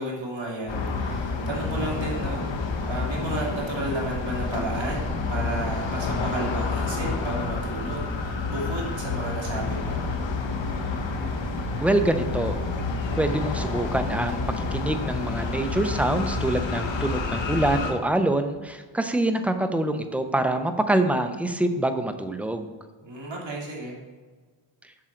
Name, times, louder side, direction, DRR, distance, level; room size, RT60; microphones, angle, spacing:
voice 1, 0.0-2.5 2.9-10.0 23.0-24.0, right 2 dB, 60° right, -2 dB, 2.3 m, -33 dB
sound 1, 0.7-17.9, left 3 dB, 60° left, 1.1 m, -29 dB
voice 2, 11.8-12.6 13.2-22.7, right 1 dB, 5° right, 8 dB, 0.6 m, -25 dB
7.7 x 6.2 x 4.4 m, 1.4 s
wide cardioid pair, 100°, 50 cm